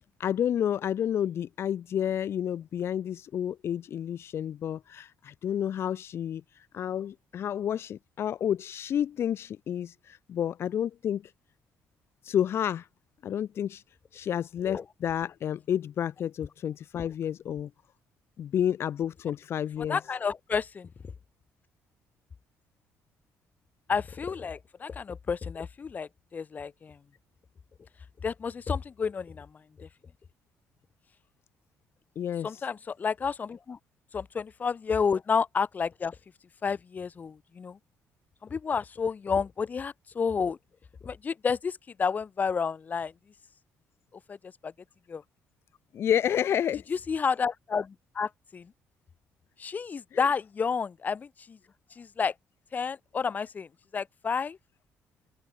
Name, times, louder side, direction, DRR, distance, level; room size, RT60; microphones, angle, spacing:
voice 1, 0.2-6.4 6.7-11.3 12.2-12.9 13.2-13.8 14.1-17.7 18.4-20.0 32.2-32.6 45.9-46.8 50.1-50.3, left 9 dB, 55° left, 1.8 m, -30 dB
voice 2, 19.9-20.9 23.9-27.0 28.2-29.5 29.8-29.9 32.4-33.8 34.1-36.1 36.6-37.8 38.4-40.6 41.0-43.1 44.3-44.4 44.6-44.7 45.1-45.2 46.9-48.7 49.6-51.6 52.0-52.3 52.7-53.7 53.9-54.6, left 6 dB, 35° left, 2.6 m, -30 dB
cardioid pair, 125°, 5 cm